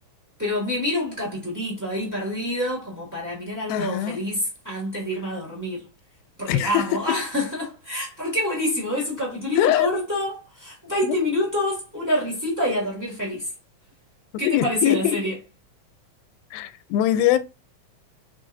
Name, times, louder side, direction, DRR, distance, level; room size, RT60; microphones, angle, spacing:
voice 1, 0.4-5.8 6.4-13.5 14.4-15.4, left 1 dB, 25° right, 0.4 m, -27 dB
voice 2, 3.7-4.2 6.5-6.8 9.6-9.9 11.0-11.2 14.5-15.2 16.5-17.4, left 12 dB, 90° left, 2.4 m, -22 dB
5.2 x 3.7 x 2.6 m
omnidirectional pair, 4.2 m